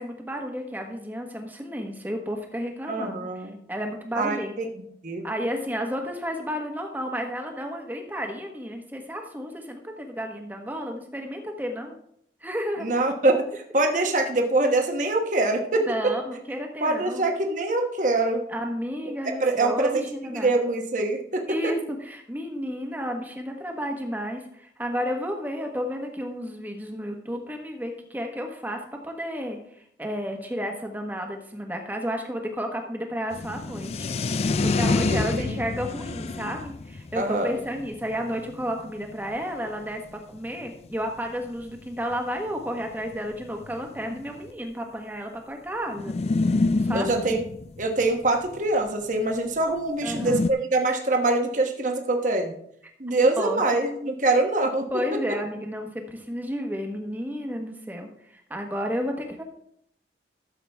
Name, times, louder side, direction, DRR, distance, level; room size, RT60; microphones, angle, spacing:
voice 1, 0.0-4.7 5.2-12.0 12.4-12.9 15.9-17.3 18.5-20.6 21.5-46.1 46.5-47.4 50.0-50.4 50.9-51.0 53.4-53.8 54.9-59.4, equal, 10° right, 3 dB, 1.3 m, -32 dB
voice 2, 2.9-3.5 4.1-4.7 5.0-5.3 12.8-15.9 16.8-18.4 19.4-20.0 20.3-21.4 34.9-35.6 37.1-37.6 46.9-47.4 47.8-52.5 53.0-54.9, right 2 dB, 45° right, 3 dB, 1.2 m, -24 dB
sound 1, 33.3-39.4 40.1-40.2 40.4-40.5 40.6-40.9 41.8-41.9 42.1-42.2 43.0-44.5 46.0-48.6 50.0-50.5, left 3 dB, 35° left, 0.3 m, -27 dB
13.0 x 7.2 x 3.5 m, 0.71 s
head